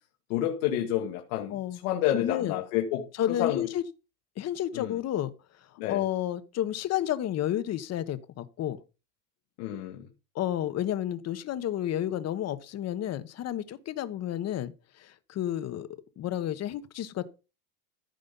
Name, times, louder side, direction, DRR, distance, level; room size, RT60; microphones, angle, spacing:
voice 1, 0.3-3.6 4.7-4.9 5.8-6.0 9.6-10.1, left 12 dB, 65° left, 1.8 m, -29 dB
voice 2, 1.5-1.8 2.1-2.6 3.2-3.8 4.4-5.3 5.9-8.8 10.3-15.9 16.2-17.3, left 11 dB, 35° left, 1.2 m, -31 dB
14.5 x 5.3 x 5.4 m
supercardioid pair, 120°, 45 cm